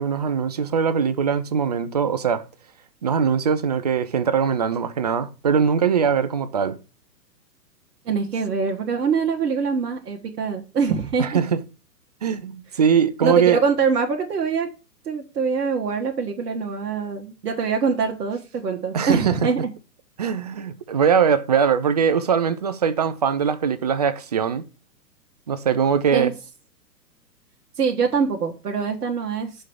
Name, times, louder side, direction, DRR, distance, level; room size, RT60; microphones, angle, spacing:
voice 1, 0.0-2.4 3.0-6.8 11.2-11.6 12.2-13.6 18.9-19.4 20.2-24.6 25.5-26.3, right 7 dB, 25° right, 0.4 m, -21 dB
voice 2, 8.0-11.4 13.2-14.7 15.0-19.7 26.1-26.3 27.8-29.6, right 5 dB, 70° right, 1.4 m, -24 dB
6.4 x 4.4 x 6.4 m
hypercardioid pair, 125°, 49 cm